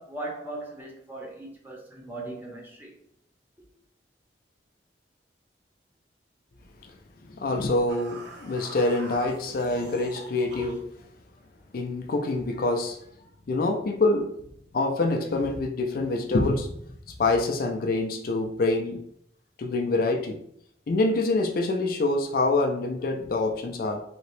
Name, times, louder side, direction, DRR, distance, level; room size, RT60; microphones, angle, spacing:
voice 1, 0.0-2.9, right 2 dB, 10° right, 0.7 m, -38 dB
voice 2, 7.3-10.8 11.7-13.0 13.5-14.3 14.7-16.7 17.2-19.0 19.6-20.4 20.9-24.0, left 2 dB, 50° left, 0.4 m, -26 dB
sound 1, 7.9-10.9, right 3 dB, 85° right, 1.0 m, -43 dB
3.0 x 2.8 x 3.0 m
head